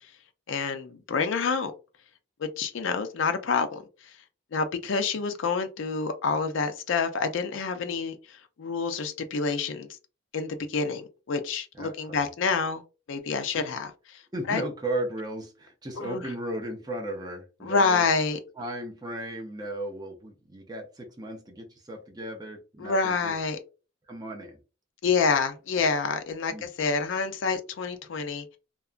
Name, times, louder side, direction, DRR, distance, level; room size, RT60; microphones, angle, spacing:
voice 1, 0.5-1.7 2.4-3.8 4.5-9.9 10.3-12.8 13.1-14.2 14.5-14.6 16.0-16.2 17.6-18.4 22.8-23.6 25.0-28.6, left 5 dB, 65° left, 0.4 m, -27 dB
voice 2, 11.7-12.3 14.3-18.1 18.6-23.3 24.1-24.6 26.5-26.6, right 1 dB, 20° right, 0.5 m, -35 dB
2.8 x 2.3 x 2.4 m
head